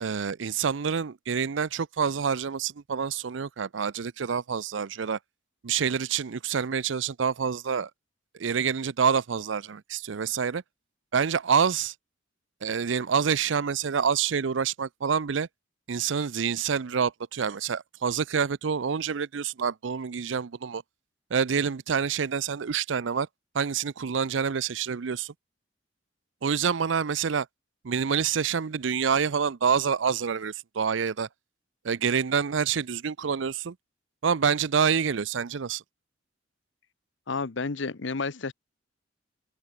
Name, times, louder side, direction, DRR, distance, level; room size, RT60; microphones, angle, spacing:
voice 1, 0.0-5.2 5.6-7.9 8.4-10.6 11.1-11.9 12.6-15.5 15.9-20.8 21.3-23.3 23.5-25.3 26.4-27.5 27.8-31.3 31.8-33.7 34.2-35.8, right 6 dB, 80° right, 0.5 m, -27 dB
voice 2, 37.3-38.5, left 4 dB, 75° left, 0.9 m, -31 dB
open air
head